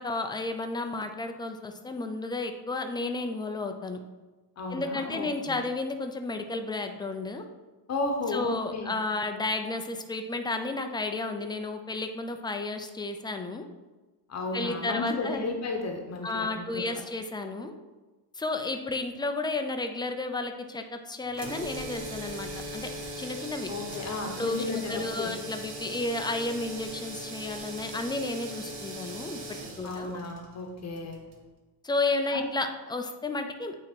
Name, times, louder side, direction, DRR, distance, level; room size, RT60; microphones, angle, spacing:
voice 1, 0.0-4.0 4.7-7.5 8.3-13.7 14.5-15.5 16.2-17.7 18.3-22.9 23.2-23.7 24.4-30.2 31.8-33.8, left 2 dB, 10° left, 6 dB, 0.4 m, -32 dB
voice 2, 4.6-5.6 7.9-8.9 14.3-17.0 23.7-25.3 29.8-31.2 32.3-32.5, left 3 dB, 40° left, 3 dB, 0.9 m, -33 dB
sound 1, 21.3-31.4, right 1 dB, 65° right, 1.3 m, -39 dB
8.6 x 2.9 x 4.3 m, 1.2 s
cardioid pair, 130°, 41 cm